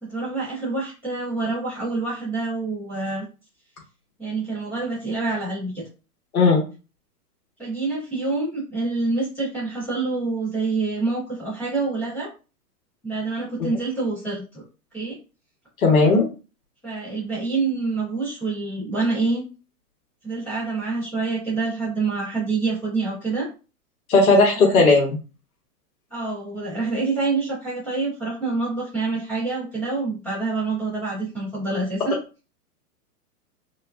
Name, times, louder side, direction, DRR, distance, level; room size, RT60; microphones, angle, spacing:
voice 1, 0.0-3.2 4.2-5.9 7.6-12.3 13.0-14.6 14.9-15.2 16.8-19.4 20.2-23.5 24.5-24.9 26.1-32.1, right 3 dB, 5° left, -12 dB, 0.5 m, -26 dB
voice 2, 15.8-16.2 24.1-25.2, left 3 dB, 65° left, -2 dB, 1.6 m, -16 dB
4.7 x 2.4 x 2.3 m, 0.32 s
hypercardioid pair, 160°, 47 cm